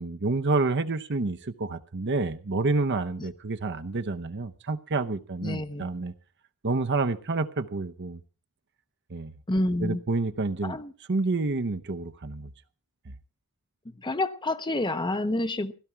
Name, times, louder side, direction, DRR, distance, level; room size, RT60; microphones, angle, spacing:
voice 1, 0.0-6.1 6.6-8.2 9.1-9.3 9.8-10.8 11.1-12.5, right 3 dB, 50° right, 0.8 m, -28 dB
voice 2, 5.4-5.9 9.5-10.0 10.6-10.9 14.0-15.7, left 2 dB, 20° left, 0.7 m, -28 dB
16.0 x 13.5 x 4.5 m
head